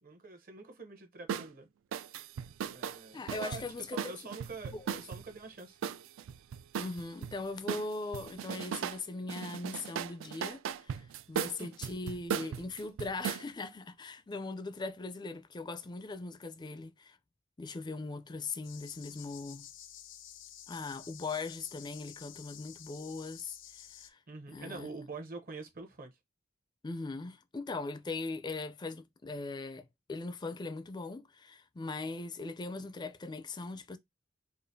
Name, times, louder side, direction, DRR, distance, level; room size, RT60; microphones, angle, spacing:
voice 1, 0.0-1.7 2.7-5.8 11.6-11.9 24.3-26.2, right 3 dB, 45° right, 0.8 m, -46 dB
sound 1, 1.3-1.5 1.9-5.2 5.8-7.3 7.7-9.0 9.3-13.4, right 8 dB, 75° right, 0.3 m, -37 dB
voice 2, 3.1-4.2 4.7-5.0 6.8-17.2 17.6-19.7 20.7-24.2 24.5-24.9 26.8-34.0, left 3 dB, 20° left, 0.4 m, -40 dB
sound 2, 18.6-24.1, left 11 dB, 65° left, 0.6 m, -51 dB
4.9 x 2.5 x 2.7 m
head